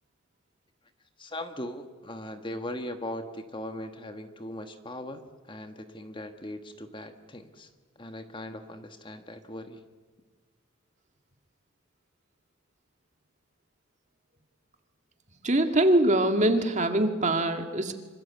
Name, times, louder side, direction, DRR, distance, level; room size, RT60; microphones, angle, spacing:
voice 1, 1.2-5.2 5.5-7.7 8.0-9.8, left 1 dB, 25° left, 7 dB, 1.4 m, -39 dB
voice 2, 15.4-17.9, right 1 dB, 35° right, 6 dB, 2.1 m, -23 dB
26.0 x 25.5 x 8.3 m, 1.5 s
head